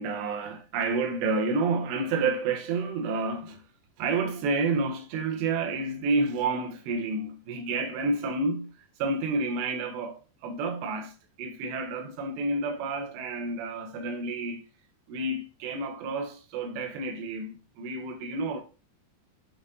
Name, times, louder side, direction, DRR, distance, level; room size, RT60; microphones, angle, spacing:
voice 1, 0.0-3.6 4.0-14.7 15.1-18.6, right 3 dB, 90° right, 3.0 m, -30 dB
7.1 x 5.4 x 2.6 m
omnidirectional pair, 4.9 m